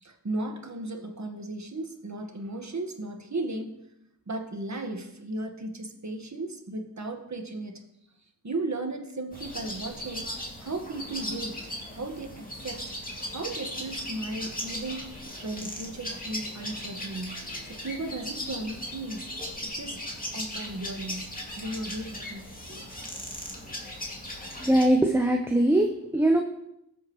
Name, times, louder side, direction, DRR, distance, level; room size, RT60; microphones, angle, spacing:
voice 1, 0.0-3.7 4.3-7.8 8.4-12.8 13.3-19.3 19.6-20.0 20.3-22.8, right 2 dB, 50° right, 4 dB, 1.7 m, -36 dB
sound 1, 9.3-24.8, left 1 dB, 25° left, 2.5 m, -38 dB
voice 2, 24.6-25.9 26.1-26.4, right 1 dB, 5° right, 2 dB, 0.9 m, -21 dB
19.5 x 7.7 x 3.2 m, 0.84 s
wide cardioid pair, 65°, 37 cm